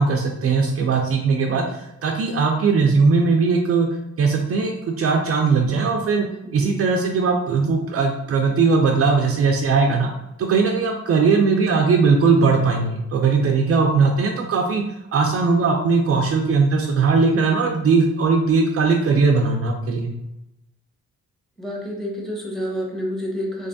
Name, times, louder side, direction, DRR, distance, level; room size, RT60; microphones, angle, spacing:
voice 1, 0.0-3.9 4.2-6.3 6.5-10.1 10.4-14.8 15.1-20.1, right 4 dB, 50° right, 2 dB, 0.5 m, -19 dB
voice 2, 6.4-6.8 21.6-23.7, equal, ahead, -2 dB, 1.0 m, -29 dB
3.3 x 3.2 x 2.6 m, 0.88 s
cardioid pair, 90°, 30 cm